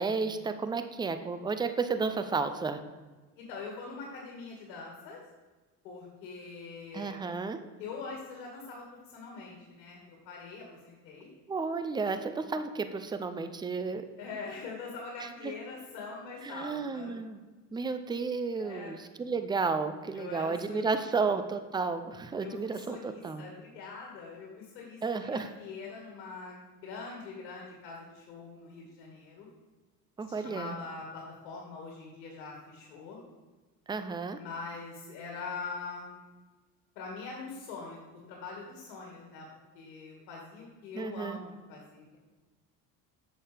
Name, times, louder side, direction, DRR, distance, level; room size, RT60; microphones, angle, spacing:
voice 1, 0.0-2.8 6.9-7.6 11.5-14.0 15.4-15.5 16.4-17.4 17.7-23.4 25.0-25.5 30.2-30.8 33.9-34.4 40.9-41.4, right 4 dB, 10° right, 10 dB, 0.4 m, -32 dB
voice 2, 3.4-5.2 5.8-7.1 7.8-11.3 14.2-17.1 18.6-19.0 20.1-21.3 22.4-25.0 25.3-29.5 30.3-33.2 34.4-36.2 37.0-39.5 39.7-42.2, left 4 dB, 75° left, -2 dB, 2.0 m, -43 dB
7.7 x 6.5 x 3.4 m, 1.3 s
hypercardioid pair, 80°, 50 cm